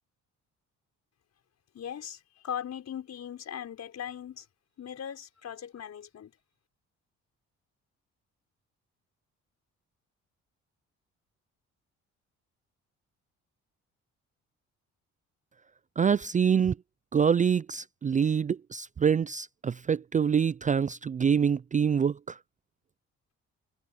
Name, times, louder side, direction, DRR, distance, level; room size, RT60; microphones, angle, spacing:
voice 1, 1.7-4.5 4.8-6.3, left 9 dB, 60° left, 5.6 m, -39 dB
voice 2, 16.0-16.7 17.1-22.1, right 7 dB, 25° right, 0.4 m, -25 dB
cardioid pair, 90°, 30 cm